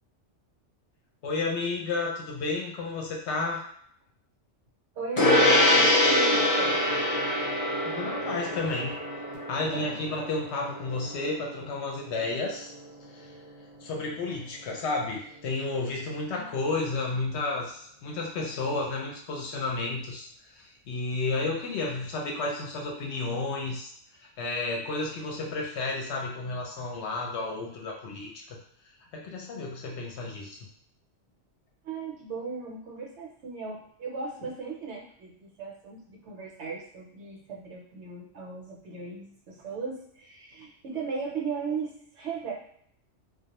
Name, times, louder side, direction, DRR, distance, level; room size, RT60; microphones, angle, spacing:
voice 1, 1.2-3.6 7.9-8.9 9.5-12.7 13.1-13.4 13.8-23.9 24.2-28.6 29.1-30.6, left 3 dB, 70° left, -1 dB, 0.8 m, -32 dB
voice 2, 4.9-6.8 9.6-10.0 16.3-16.5 31.8-42.5, right 4 dB, 70° right, -2 dB, 0.9 m, -36 dB
Gong, 5.2-14.9, left 1 dB, 50° left, 0.4 m, -26 dB
2.2 x 2.0 x 2.8 m, 0.64 s
omnidirectional pair, 1.3 m